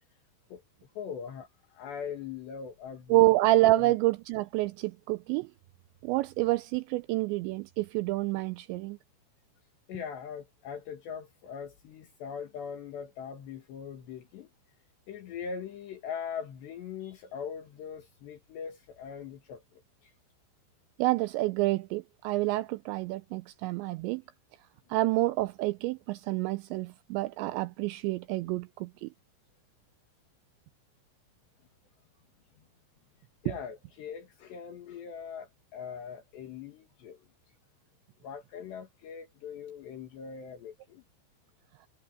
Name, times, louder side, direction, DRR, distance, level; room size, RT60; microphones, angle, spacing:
voice 1, 1.0-3.2 3.8-3.9 9.9-14.5 15.1-20.1 33.4-37.2 38.2-41.0, left 7 dB, 65° left, 3.9 m, -41 dB
voice 2, 3.1-5.5 6.0-9.0 21.0-24.2 24.9-29.1 33.5-33.6, right 18 dB, 85° right, 2.6 m, -28 dB
omnidirectional pair, 5.7 m